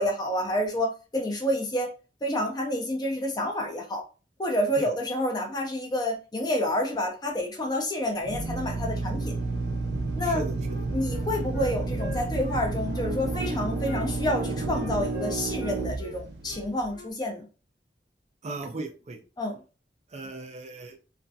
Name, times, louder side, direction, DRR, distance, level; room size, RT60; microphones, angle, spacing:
voice 1, 0.0-1.9 2.2-4.0 4.4-9.3 10.2-10.4 10.9-17.5 19.4-19.5, left 1 dB, 25° left, 0.5 m, -29 dB
Drill, 8.2-16.8, right 3 dB, 90° right, 0.5 m, -31 dB
Wind instrument woodwind instrument, 10.2-13.6 13.8-17.1, left 3 dB, 80° left, 0.7 m, -44 dB
voice 2, 10.2-10.8 18.4-19.2 20.1-21.0, right 2 dB, 40° right, 0.4 m, -37 dB
2.4 x 2.2 x 2.6 m
head